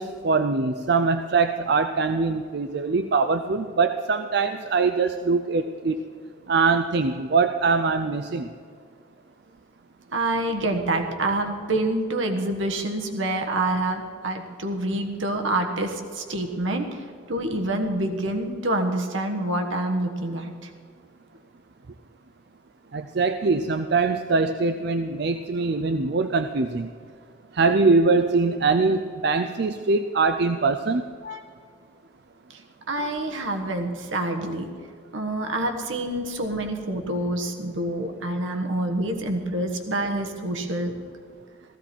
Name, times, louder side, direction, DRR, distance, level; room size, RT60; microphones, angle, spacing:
voice 1, 0.0-6.0 6.5-8.5 22.9-26.9 27.5-31.1, right 4 dB, 55° right, 8 dB, 0.5 m, -23 dB
voice 2, 10.1-20.7 31.2-31.4 32.5-32.6 32.9-34.7 35.1-41.0, right 1 dB, 80° right, 4 dB, 1.4 m, -27 dB
16.0 x 15.0 x 4.4 m, 2.2 s
head